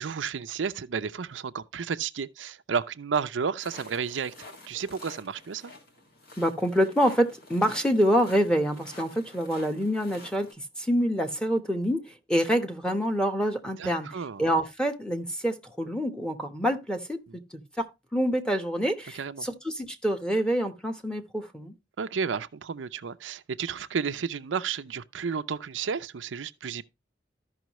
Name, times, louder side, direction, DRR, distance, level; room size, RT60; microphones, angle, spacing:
voice 1, 0.0-4.3 4.7-5.7 13.8-14.4 17.3-17.4 19.1-19.5 22.0-26.8, right 6 dB, 85° right, 0.5 m, -32 dB
sound 1, 3.6-10.5, left 2 dB, 55° left, 1.8 m, -48 dB
voice 2, 6.4-14.1 14.4-17.2 17.5-21.7, equal, 5° left, 1.1 m, -26 dB
13.5 x 5.5 x 3.0 m
head